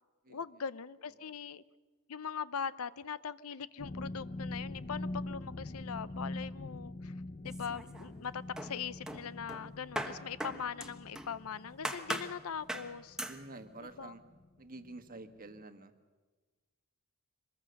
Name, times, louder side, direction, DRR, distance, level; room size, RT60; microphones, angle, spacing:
voice 1, 0.3-1.6 2.1-7.1 7.4-13.2 14.0-14.1, left 6 dB, 70° left, 16 dB, 0.6 m, -41 dB
sound 1, 3.8-14.5 14.8-15.1 15.5-15.6, left 2 dB, 35° left, 0.7 m, -44 dB
sound 2, 7.4-8.2 8.6-11.4 11.8-12.3 12.7-12.9 13.2-13.4, right 1 dB, 5° right, 1.2 m, -40 dB
voice 2, 13.3-14.2 14.6-15.9, right 2 dB, 40° right, 7 dB, 1.4 m, -48 dB
25.0 x 21.0 x 6.5 m, 1.3 s
head